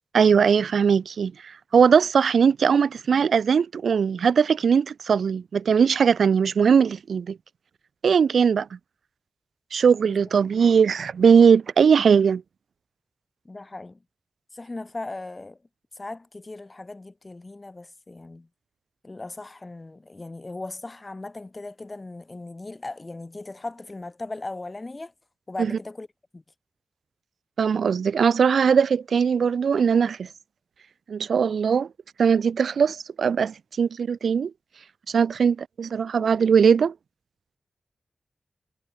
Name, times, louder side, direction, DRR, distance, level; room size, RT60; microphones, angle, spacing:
voice 1, 0.1-1.3 1.7-7.4 8.0-8.7 9.7-12.4 25.6-25.7 27.6-30.3 31.1-31.9 32.2-34.5 35.1-36.9, right 6 dB, 90° right, 0.6 m, -20 dB
voice 2, 13.4-14.0 14.5-15.6 16.0-18.5 19.0-25.1 25.5-26.1 26.3-26.4, left 2 dB, 35° left, 2.6 m, -38 dB
cardioid pair, 55°, 0 cm